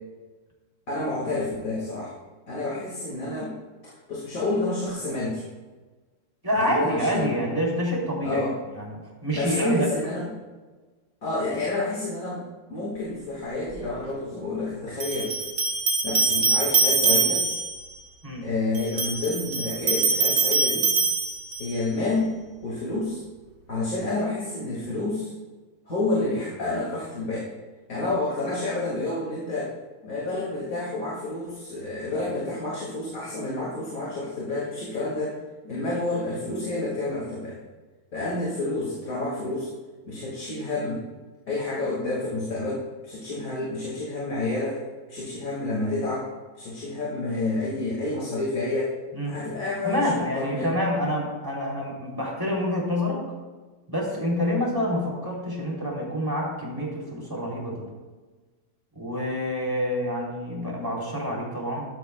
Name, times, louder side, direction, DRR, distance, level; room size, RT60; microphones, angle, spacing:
voice 1, 0.9-2.1 2.5-3.5 3.8-5.4 6.5-7.3 8.2-8.5 9.3-10.3 11.2-12.4 12.7-15.3 16.0-17.4 18.4-20.9 21.6-22.4 22.6-23.2 23.7-25.3 25.9-27.5 27.9-29.7 30.0-35.3 35.6-37.6 38.1-39.7 40.1-41.0 41.5-44.8 45.1-46.3 46.5-48.9 49.2-50.1 50.3-50.7, left 2 dB, 60° left, -5 dB, 2.6 m, -29 dB
voice 2, 6.4-8.4 8.7-9.9 18.2-18.4 49.1-49.4 49.8-53.2 53.9-57.8 58.9-61.8, equal, 15° right, -3 dB, 3.1 m, -27 dB
sound 1, 13.7-13.8 15.0-17.8 18.7-21.8, right 4 dB, 85° right, 2.5 m, -24 dB
14.0 x 12.0 x 2.3 m, 1.3 s
omnidirectional pair, 1.6 m